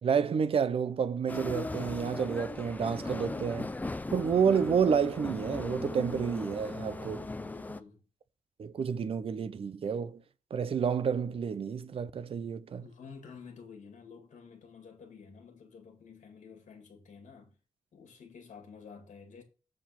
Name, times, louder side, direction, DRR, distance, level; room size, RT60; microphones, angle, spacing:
voice 1, 0.0-3.7 4.1-7.2 8.6-10.2 10.5-12.8, right 6 dB, 45° right, 0.6 m, -29 dB
sound 1, 1.3-7.8, left 2 dB, 10° left, 0.4 m, -38 dB
voice 2, 7.2-8.0 12.8-17.6 17.9-19.4, left 5 dB, 65° left, 2.2 m, -51 dB
7.4 x 4.6 x 5.8 m
wide cardioid pair, 160°, 13 cm